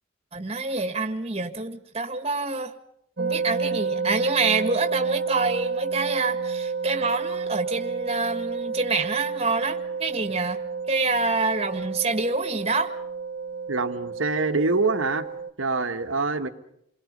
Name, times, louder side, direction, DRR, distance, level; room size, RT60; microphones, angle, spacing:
voice 1, 0.3-2.7 3.2-10.6 10.9-12.9, right 3 dB, 30° right, 7 dB, 1.8 m, -27 dB
sound 1, 3.2-15.5, right 5 dB, 55° right, 1.2 m, -30 dB
voice 2, 13.7-15.3 15.6-16.5, right 3 dB, 85° right, 8 dB, 1.6 m, -25 dB
29.0 x 22.0 x 5.4 m, 0.75 s
head